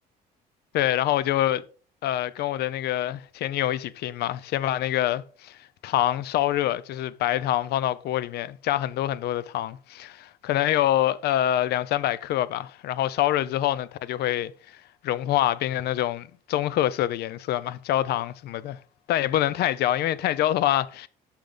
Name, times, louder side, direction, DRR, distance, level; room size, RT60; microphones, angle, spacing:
voice 1, 0.7-1.6 2.0-14.8 15.0-18.8 19.1-21.1, left 13 dB, 70° left, 0.7 m, -26 dB
10.5 x 6.6 x 3.9 m
cardioid pair, 110°, 17 cm